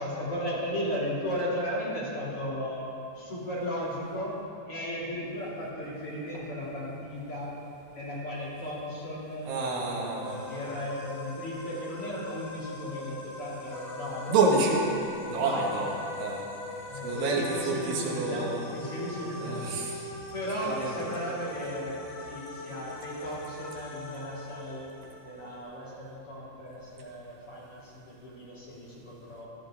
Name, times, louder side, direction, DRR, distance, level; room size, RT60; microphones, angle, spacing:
voice 1, 0.0-2.9 3.1-4.4 4.7-7.6 7.9-14.4 15.4-15.9 16.8-24.9 25.2-29.5, equal, 35° left, -8 dB, 3.6 m, -36 dB
voice 2, 9.5-10.4 14.3-14.9 15.3-16.4 17.0-18.6 19.4-20.0 20.6-20.9, right 3 dB, 85° right, -2 dB, 3.7 m, -28 dB
sound 1, 10.2-25.6, left 2 dB, 80° left, 4.0 m, -41 dB
16.0 x 13.0 x 3.8 m, 2.7 s
omnidirectional pair, 4.6 m